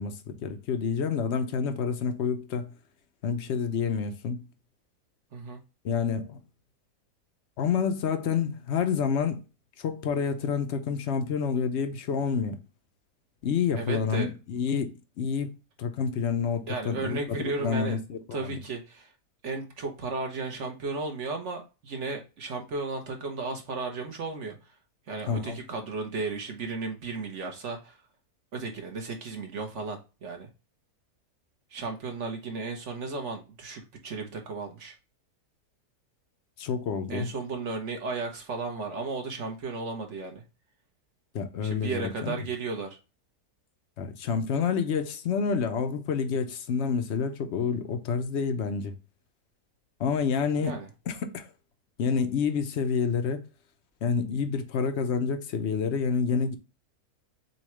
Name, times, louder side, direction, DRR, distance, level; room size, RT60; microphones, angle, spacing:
voice 1, 0.0-2.7 3.2-4.4 5.8-6.4 7.6-9.4 9.8-12.6 13.4-15.5 15.8-18.5 25.3-25.6 36.6-37.3 41.3-42.4 44.0-48.9 50.0-50.8 51.1-51.5 52.0-53.4 54.0-56.6, left 6 dB, 60° left, 0.8 m, -28 dB
voice 2, 13.8-14.3 16.7-18.0 18.3-19.1 19.4-24.6 25.1-28.0 28.5-30.5 31.7-34.9 37.1-40.4 41.6-43.0 50.6-50.9, right 3 dB, 55° right, 1.3 m, -34 dB
7.1 x 2.4 x 3.1 m
omnidirectional pair, 1.6 m